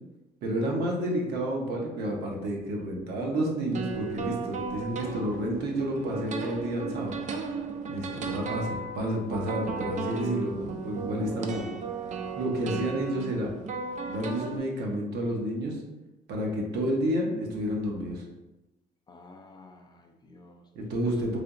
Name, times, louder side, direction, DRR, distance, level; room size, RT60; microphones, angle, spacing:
voice 1, 0.4-7.1 7.9-11.6 12.4-13.5 14.1-15.8 16.3-18.3 20.7-21.4, right 1 dB, 70° right, -1 dB, 0.8 m, -30 dB
sound 1, 3.7-14.6, right 4 dB, 45° right, 0.4 m, -35 dB
voice 2, 11.2-11.7 19.1-20.7 21.1-21.4, left 2 dB, 25° left, 3 dB, 0.4 m, -50 dB
3.4 x 2.7 x 2.5 m, 1.0 s
cardioid pair, 110°, 17 cm